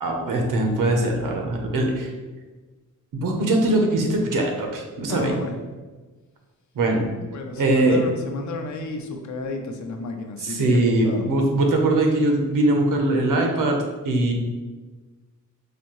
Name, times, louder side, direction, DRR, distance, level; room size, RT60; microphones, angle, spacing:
voice 1, 0.0-2.1 3.1-5.3 6.7-7.1 7.6-8.0 10.4-13.8 14.0-14.3, right 2 dB, 70° right, 2 dB, 0.8 m, -21 dB
voice 2, 5.1-5.6 7.3-11.3, left 2 dB, 60° left, 4 dB, 0.6 m, -31 dB
4.2 x 2.7 x 3.0 m, 1.3 s
cardioid pair, 125°, 33 cm